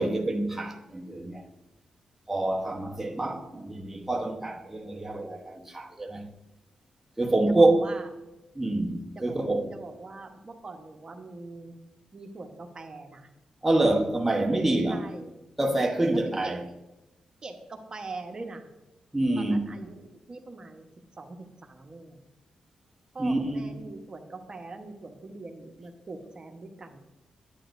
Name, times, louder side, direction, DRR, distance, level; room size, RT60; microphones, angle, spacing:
voice 1, 0.0-1.5 2.3-6.3 7.2-8.0 8.5-9.8 13.6-15.1 15.6-16.6 19.1-19.7 23.2-23.9, right 2 dB, 10° right, 1.0 m, -26 dB
voice 2, 7.5-8.1 9.2-9.4 9.7-11.7 12.1-13.3 14.9-15.3 16.1-16.5 17.4-18.7 19.4-20.9 21.1-22.2 23.1-27.0, right 3 dB, 40° right, 1.0 m, -42 dB
9.9 x 9.0 x 2.6 m
cardioid pair, 75°, 2 cm